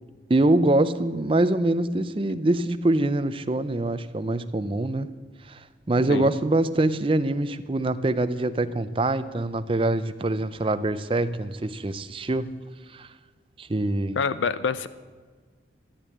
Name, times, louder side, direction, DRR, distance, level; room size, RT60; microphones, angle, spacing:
voice 1, 0.3-5.1 5.5-5.6 5.9-12.5 12.9-13.1 13.6-14.2, right 2 dB, 30° right, 12 dB, 0.5 m, -24 dB
voice 2, 14.2-14.9, left 5 dB, 90° left, 15 dB, 0.5 m, -26 dB
14.0 x 8.6 x 8.5 m, 1.5 s
head